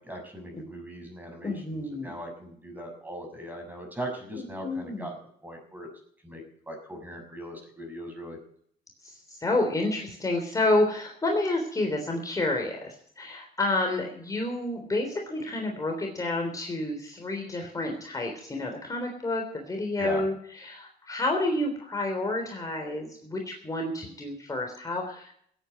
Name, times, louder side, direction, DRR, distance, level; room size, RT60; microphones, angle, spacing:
voice 1, 0.0-5.1 5.4-5.9 6.2-8.4 20.0-20.2, equal, 10° right, 3 dB, 6.3 m, -39 dB
voice 2, 1.4-2.1 4.6-5.1 9.0-25.3, left 2 dB, 20° left, 1 dB, 3.4 m, -29 dB
16.5 x 9.1 x 8.0 m, 0.64 s
cardioid pair, 110°, 17 cm